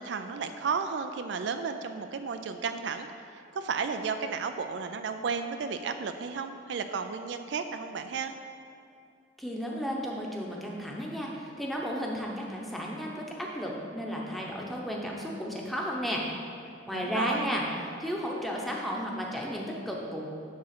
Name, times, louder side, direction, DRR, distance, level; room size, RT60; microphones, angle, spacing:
voice 1, 0.0-3.1 3.6-8.3 16.9-17.5, right 5 dB, 70° right, 8 dB, 0.4 m, -33 dB
voice 2, 9.4-16.3 16.9-17.7 18.0-20.2, equal, ahead, -3 dB, 0.9 m, -33 dB
10.0 x 3.7 x 5.9 m, 2.5 s
head